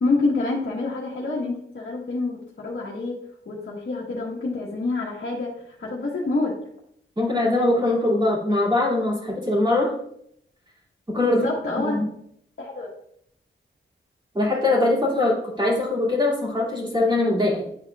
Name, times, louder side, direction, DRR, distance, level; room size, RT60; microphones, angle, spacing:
voice 1, 0.0-3.2 3.4-6.5 11.2-12.0 12.6-12.9, left 3 dB, 60° left, -5 dB, 1.3 m, -27 dB
voice 2, 7.2-9.9 11.1-11.4 11.8-12.1 14.3-17.6, left 2 dB, 20° right, -4 dB, 2.6 m, -22 dB
10.5 x 4.3 x 2.3 m, 0.70 s
wide cardioid pair, 95°, 21 cm